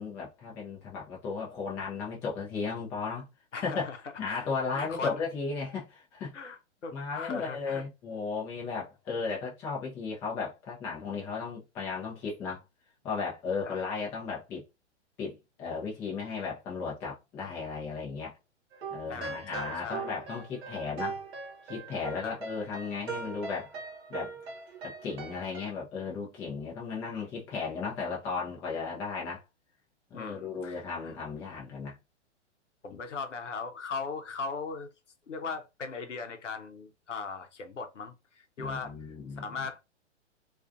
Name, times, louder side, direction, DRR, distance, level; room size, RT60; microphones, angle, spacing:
voice 1, 0.0-3.3 3.5-3.8 4.2-6.3 6.9-12.6 13.0-14.6 15.2-18.3 18.9-21.2 21.7-23.7 24.1-24.3 24.8-29.4 30.1-32.0 32.9-33.0 38.6-39.5, left 5 dB, 10° left, 0.3 m, -35 dB
voice 2, 3.5-4.0 4.3-4.5 4.7-5.2 6.3-7.8 13.6-13.7 19.1-20.1 22.2-22.4 30.1-31.2 32.8-34.9 35.3-38.9 39.4-39.8, left 4 dB, 85° left, 0.7 m, -38 dB
sound 1, 18.7-25.7, right 4 dB, 60° right, 0.9 m, -40 dB
2.4 x 2.3 x 2.5 m
figure-of-eight pair, 115°, 36 cm